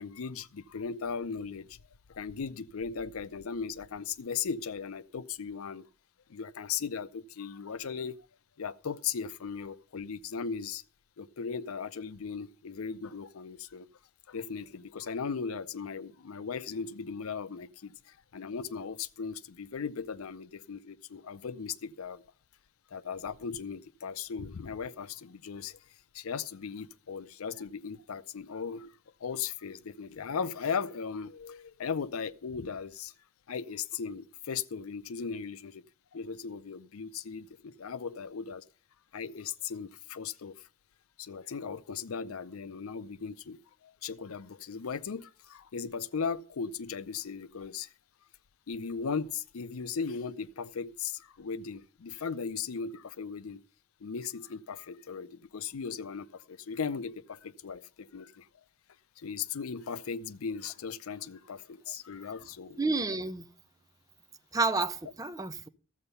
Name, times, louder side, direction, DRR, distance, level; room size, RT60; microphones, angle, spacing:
voice 1, 0.0-1.8 2.1-5.9 6.3-8.2 8.6-10.8 11.2-13.9 14.3-22.2 22.9-25.8 26.1-28.9 29.2-33.1 33.5-35.8 36.1-38.6 39.1-40.7 41.2-47.9 48.7-53.6 54.0-58.5 59.2-62.8, left 6 dB, 85° left, 0.5 m, -37 dB
voice 2, 62.8-63.5 64.5-65.7, right 3 dB, 15° right, 0.6 m, -30 dB
13.0 x 7.9 x 5.5 m
head